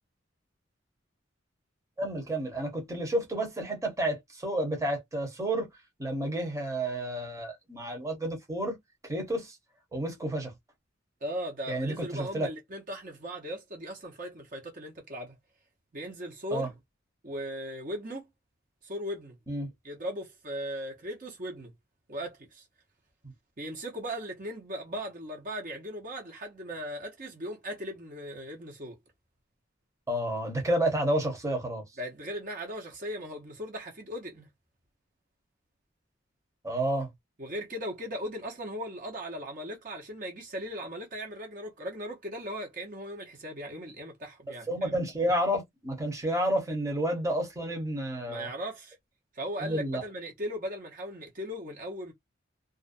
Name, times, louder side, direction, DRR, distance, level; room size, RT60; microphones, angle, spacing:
voice 1, 2.0-5.7 6.0-8.8 9.1-9.6 9.9-10.5 11.7-12.5 16.5-16.7 19.5-19.7 30.1-31.8 36.6-37.1 44.7-48.5 49.6-50.0, right 1 dB, 15° right, 0.9 m, -30 dB
voice 2, 11.2-15.3 15.9-16.7 17.2-18.2 18.8-19.3 19.8-21.7 22.1-22.6 23.6-29.0 32.0-34.5 37.4-44.9 48.3-49.0 49.3-52.1, equal, 45° right, 0.8 m, -38 dB
2.4 x 2.2 x 2.5 m
head